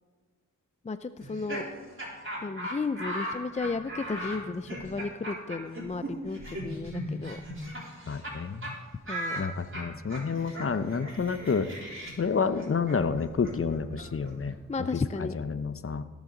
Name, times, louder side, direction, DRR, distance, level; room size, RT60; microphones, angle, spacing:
voice 1, 0.8-1.6 2.4-7.4 9.1-9.4 14.7-15.3, left 4 dB, 20° left, 12 dB, 0.4 m, -34 dB
Laughter, 1.2-8.4 8.6-8.7 9.1-14.8, equal, 40° right, 3.7 m, -38 dB
voice 2, 8.1-8.7 9.4-11.7 12.2-14.6 15.2-16.0, left 5 dB, 45° left, 12 dB, 0.8 m, -29 dB
18.5 x 7.1 x 3.9 m, 1.4 s
cardioid pair, 45°, 31 cm